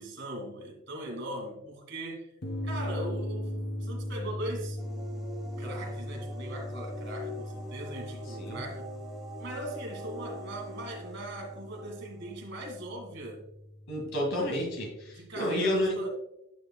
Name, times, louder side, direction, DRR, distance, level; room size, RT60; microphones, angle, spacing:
voice 1, 0.0-2.4 2.6-4.8 5.6-8.9 9.4-13.4 15.1-16.1, right 1 dB, 55° right, 1 dB, 2.1 m, -40 dB
sound 1, 2.4-15.3, left 1 dB, 50° left, 0.9 m, -39 dB
sound 2, 4.8-13.1, equal, ahead, 1.5 m, -44 dB
voice 2, 13.9-16.0, left 1 dB, 65° left, -1 dB, 2.1 m, -30 dB
9.3 x 7.3 x 2.3 m, 0.83 s
head